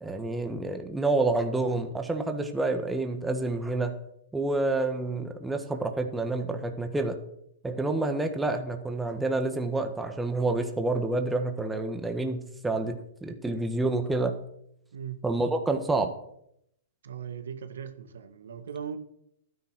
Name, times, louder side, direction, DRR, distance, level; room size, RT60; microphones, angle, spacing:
voice 1, 0.0-3.9 4.3-7.2 7.6-14.3 15.2-16.1, right 2 dB, 5° right, 1.5 m, -28 dB
voice 2, 14.9-15.2 17.0-19.0, right 8 dB, 80° right, 1.7 m, -38 dB
12.5 x 9.7 x 6.1 m
hypercardioid pair, 135°, 0 cm